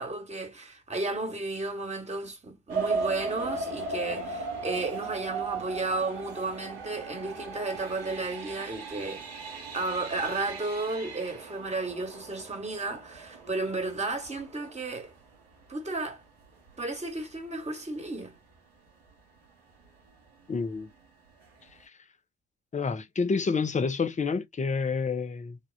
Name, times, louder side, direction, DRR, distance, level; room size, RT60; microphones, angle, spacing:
voice 1, 0.0-15.1 15.7-16.2 16.8-18.4, right 2 dB, 20° right, 1.5 m, -33 dB
sound 1, 2.7-15.3 15.9-16.0 16.5-16.7 17.1-17.2, right 4 dB, 85° right, 0.8 m, -37 dB
voice 2, 20.5-20.9 21.8-21.9 22.7-25.6, left 4 dB, 25° left, 0.7 m, -28 dB
3.5 x 2.3 x 2.6 m
figure-of-eight pair, 40°, 30 cm